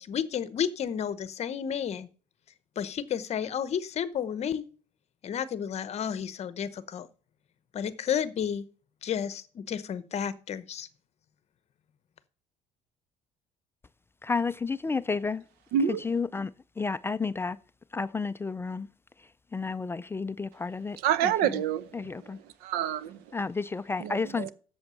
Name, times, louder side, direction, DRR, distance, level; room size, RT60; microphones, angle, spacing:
voice 1, 0.0-2.1 2.8-4.6 5.2-7.1 7.7-8.7 9.0-10.9, left 8 dB, 45° left, 0.9 m, -32 dB
voice 2, 14.2-15.4 16.0-16.5 16.8-17.6 17.9-18.9 19.5-21.0 21.2-21.3 21.9-22.4 23.3-24.5, left 4 dB, 15° left, 0.4 m, -31 dB
voice 3, 15.7-16.0 20.9-22.3 22.6-23.5 24.0-24.5, right 9 dB, 90° right, 0.8 m, -28 dB
8.0 x 7.2 x 6.9 m
cardioid pair, 130°, 16 cm